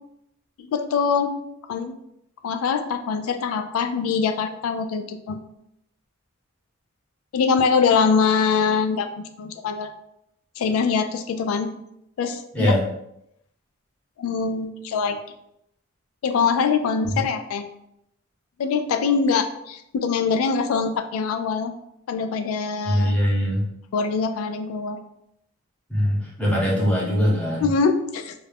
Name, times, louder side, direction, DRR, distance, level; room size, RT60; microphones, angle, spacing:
voice 1, 0.6-1.4 1.7-2.0 2.4-5.4 7.3-9.1 9.4-9.9 10.6-11.7 12.2-12.8 14.2-15.2 16.2-17.7 18.6-21.7 22.1-23.2 23.9-25.0 27.6-28.3, left 5 dB, 80° left, 9 dB, 0.3 m, -23 dB
voice 2, 22.9-23.7 25.9-27.7, equal, 5° left, -5 dB, 0.7 m, -21 dB
2.3 x 2.0 x 3.3 m, 0.79 s
head